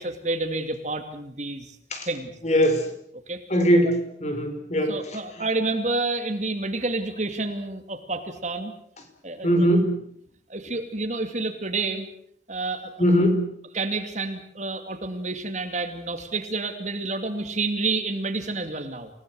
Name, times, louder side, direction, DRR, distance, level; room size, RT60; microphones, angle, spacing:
voice 1, 0.0-1.8 2.1-2.3 3.3-3.4 4.9-8.7 9.2-9.7 10.5-12.1 12.5-12.9 13.7-19.1, right 3 dB, 40° right, 7 dB, 2.6 m, -29 dB
voice 2, 2.4-2.9 3.5-4.0 4.2-5.0 9.4-9.9 13.0-13.4, equal, 40° left, 6 dB, 4.6 m, -20 dB
28.0 x 18.0 x 8.0 m, 0.66 s
head